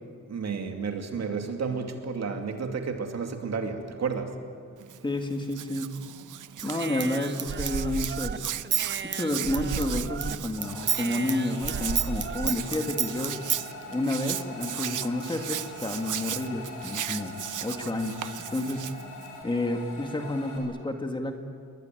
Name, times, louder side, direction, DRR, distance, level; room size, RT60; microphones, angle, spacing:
voice 1, 0.3-4.4, right 5 dB, 60° right, 5 dB, 2.5 m, -31 dB
Hands, 4.8-19.4, right 11 dB, 85° right, 0.8 m, -37 dB
voice 2, 5.0-5.9 6.6-8.4 9.0-13.4 13.9-17.3 17.6-18.2 18.5-18.8 19.4-21.3, left 1 dB, 15° left, 4 dB, 2.0 m, -30 dB
Human voice / Scissors, 6.6-10.3 10.6-13.6, right 7 dB, 40° right, 0.8 m, -31 dB
sound 1, 10.6-20.6, left 3 dB, 85° left, 6.9 m, -43 dB
29.0 x 22.0 x 9.3 m, 2.1 s
wide cardioid pair, 165°, 30 cm